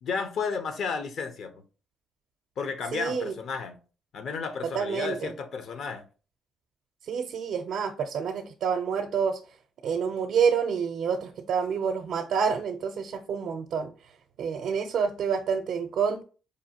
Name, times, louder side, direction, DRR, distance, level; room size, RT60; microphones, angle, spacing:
voice 1, 0.0-1.6 2.6-3.8 4.1-6.0, left 5 dB, 65° left, 0.6 m, -32 dB
voice 2, 2.9-3.3 4.6-5.3 7.0-9.4 9.8-13.9 14.4-16.2, right 6 dB, 70° right, 0.5 m, -28 dB
4.9 x 2.5 x 2.7 m
cardioid pair, 90°, 0 cm